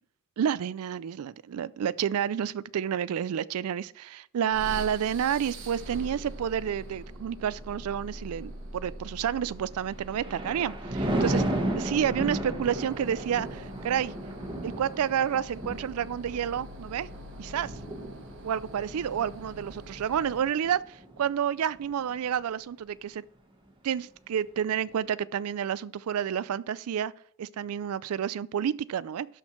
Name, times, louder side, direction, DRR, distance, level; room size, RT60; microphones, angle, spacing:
voice 1, 0.4-11.4 11.8-14.1 14.6-17.1 17.4-17.7 18.4-23.2 23.8-27.1 27.4-29.3, right 8 dB, 90° right, 0.4 m, -30 dB
sound 1, 4.5-20.7, right 1 dB, 60° right, 1.4 m, -44 dB
Thunder, 9.8-21.3 21.8-22.1, right 1 dB, 25° right, 1.0 m, -34 dB
11.5 x 4.4 x 4.4 m
head